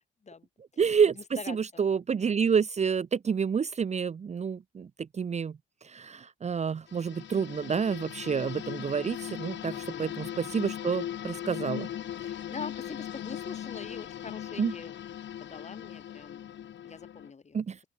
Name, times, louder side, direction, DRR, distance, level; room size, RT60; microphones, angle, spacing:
voice 1, 0.8-11.9 14.6-14.7 17.5-17.8, right 6 dB, 35° right, 0.8 m, -29 dB
sound 1, 6.9-17.3, left 10 dB, 65° left, 3.3 m, -39 dB
voice 2, 9.7-10.2 12.2-14.9 15.4-17.6, left 5 dB, 35° left, 5.9 m, -43 dB
open air
cardioid pair, 90°, 20 cm